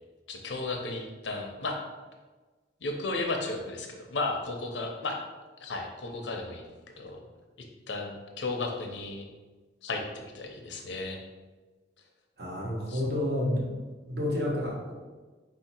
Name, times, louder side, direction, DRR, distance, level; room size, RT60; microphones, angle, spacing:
voice 1, 0.3-1.8 2.8-5.2 5.6-7.2 7.9-9.3 9.8-11.2 12.9-13.0, left 3 dB, 85° left, 2 dB, 0.7 m, -34 dB
voice 2, 12.4-13.7 14.1-14.9, left 1 dB, 60° right, -3 dB, 1.2 m, -29 dB
4.2 x 2.8 x 4.3 m, 1.3 s
head